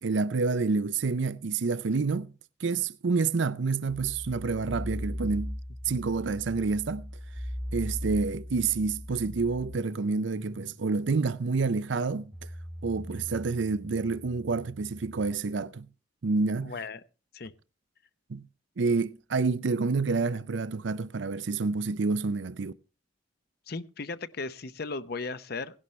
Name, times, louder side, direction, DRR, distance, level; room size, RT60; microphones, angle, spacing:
voice 1, 0.0-2.3 2.6-5.6 5.8-7.1 7.7-12.3 12.8-15.9 16.2-16.7 18.3-18.4 18.8-22.7, right 4 dB, 65° right, 0.5 m, -28 dB
sound 1, 3.9-15.3, equal, 5° right, 1.1 m, -40 dB
voice 2, 16.6-17.0 17.3-17.5 23.7-25.8, left 3 dB, 50° left, 0.7 m, -36 dB
17.5 x 11.0 x 3.2 m
head